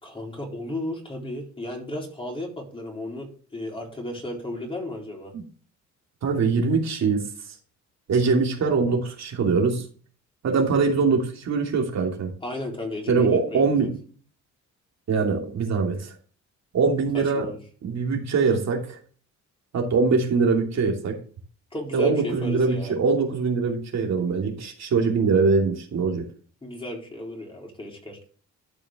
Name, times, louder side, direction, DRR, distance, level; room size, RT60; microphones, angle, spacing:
voice 1, 0.0-5.3 12.4-13.9 17.1-17.6 21.7-22.9 26.6-28.2, left 1 dB, 15° left, 0 dB, 3.9 m, -34 dB
voice 2, 6.2-7.2 8.1-9.9 10.4-12.3 13.1-14.0 15.1-16.1 16.7-17.5 17.8-19.0 19.7-21.2 21.9-26.3, right 4 dB, 60° right, 1 dB, 2.9 m, -23 dB
13.0 x 5.1 x 3.8 m, 0.42 s
cardioid pair, 90°, 30 cm